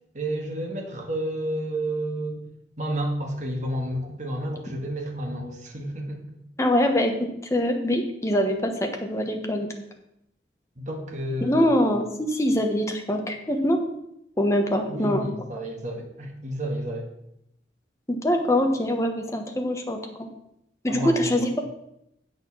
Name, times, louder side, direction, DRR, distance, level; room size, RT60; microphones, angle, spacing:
voice 1, 0.1-2.4 2.8-6.3 10.8-11.7 14.9-17.1 20.9-21.3, right 1 dB, 45° right, 2 dB, 1.7 m, -31 dB
voice 2, 6.6-7.1 7.5-9.7 11.4-13.8 14.4-15.2 18.1-20.3 20.8-21.6, left 1 dB, 15° left, 3 dB, 1.1 m, -23 dB
8.1 x 6.7 x 6.2 m, 0.79 s
head